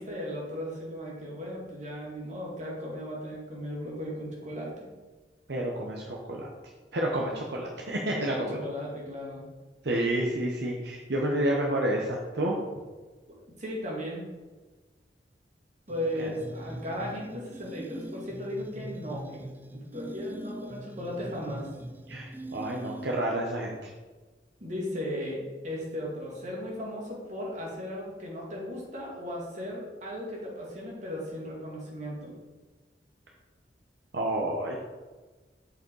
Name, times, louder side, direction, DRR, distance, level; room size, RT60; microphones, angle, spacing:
voice 1, 0.0-4.9 8.1-9.4 13.3-14.3 15.9-19.4 19.7-21.7 24.6-25.4 25.6-32.3, equal, 45° right, -3 dB, 2.2 m, -36 dB
voice 2, 5.5-6.5 6.9-8.6 9.8-12.5 16.2-16.3 22.1-23.9 34.1-34.8, right 1 dB, 75° right, -1 dB, 0.9 m, -29 dB
sound 1, 15.9-23.4, right 1 dB, 10° right, 0.4 m, -42 dB
7.1 x 5.2 x 4.7 m, 1.3 s
head